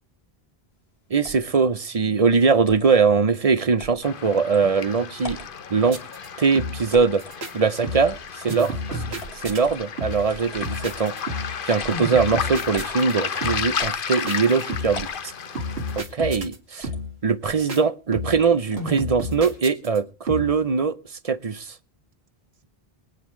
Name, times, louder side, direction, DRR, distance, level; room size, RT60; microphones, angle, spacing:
voice 1, 1.1-5.4 5.7-6.0 6.4-7.2 7.5-11.4 11.6-15.3 16.0-16.9 17.2-21.0 21.2-21.8, right 5 dB, 40° right, 0.7 m, -22 dB
sound 1, 1.2-1.6 2.6-2.9 3.8-4.0 4.5-4.6 5.2-5.5 6.9-7.4 8.1-8.5 9.2-9.9 10.3-11.2 11.8-12.1 12.7-13.0 13.8-14.4 14.9-15.2 16.2-16.4 16.8-17.0 17.4-17.7 18.3-19.0, equal, 85° left, 3.0 m, -41 dB
Waves surf, 4.0-16.0, left 7 dB, 60° left, 1.0 m, -33 dB
sound 2, 5.9-6.3 6.6-6.9 7.2-7.5 7.8-8.2 8.5-9.6 10.0-10.4 10.6-11.6 11.9-13.1 13.4-13.8 14.3-15.1 15.6-16.6 16.8-17.2 17.5-17.8 18.1-18.5 18.8-20.0 20.3-20.6, equal, 85° right, 2.2 m, -31 dB
24.0 x 9.2 x 3.1 m
omnidirectional pair, 1.0 m